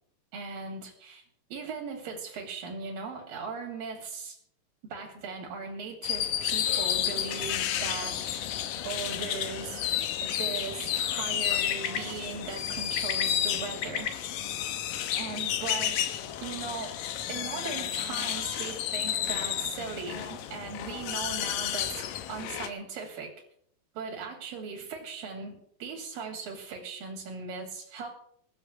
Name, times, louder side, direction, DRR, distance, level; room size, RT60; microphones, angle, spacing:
voice 1, 0.3-1.2 1.5-4.4 4.8-8.4 8.8-9.8 10.2-14.1 15.2-16.1 16.4-17.0 17.3-23.3 23.9-28.1, right 5 dB, 85° right, 1 dB, 4.5 m, -38 dB
sound 1, 6.0-22.7, left 11 dB, 80° left, 2.7 m, -31 dB
sound 2, 11.4-20.5, left 7 dB, 60° left, 2.9 m, -43 dB
18.5 x 7.4 x 8.1 m, 0.66 s
omnidirectional pair, 3.9 m